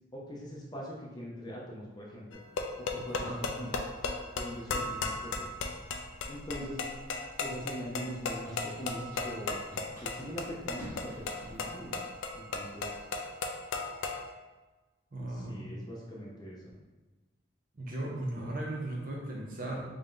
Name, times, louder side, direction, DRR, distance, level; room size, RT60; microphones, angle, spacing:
voice 1, 0.1-2.4 2.8-3.8 4.3-5.5 6.3-6.8 7.4-9.6 10.0-12.0 12.3-12.9 15.3-16.7, equal, 20° left, -4 dB, 0.5 m, -42 dB
sound 1, 2.3-14.2, left 3 dB, 80° left, 0.4 m, -36 dB
Run, 5.3-13.0, equal, 15° right, 1.1 m, -52 dB
voice 2, 15.1-15.6 17.8-19.8, right 1 dB, 45° right, -2 dB, 0.6 m, -36 dB
3.4 x 2.6 x 3.6 m, 1.2 s
head